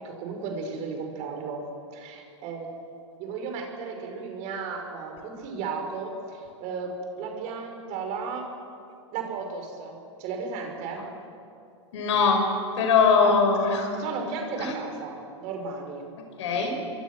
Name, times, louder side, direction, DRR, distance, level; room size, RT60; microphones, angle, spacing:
voice 1, 0.0-1.6 1.9-2.7 3.2-8.5 9.1-9.9 10.2-11.0 13.2-13.4 13.9-16.0, right 5 dB, 45° right, 3 dB, 5.7 m, -34 dB
voice 2, 11.9-12.5 12.8-13.9 14.6-14.7 16.4-16.7, left 5 dB, 65° left, 4 dB, 5.5 m, -21 dB
27.0 x 23.0 x 6.3 m, 2.5 s
hypercardioid pair, 105°, 16 cm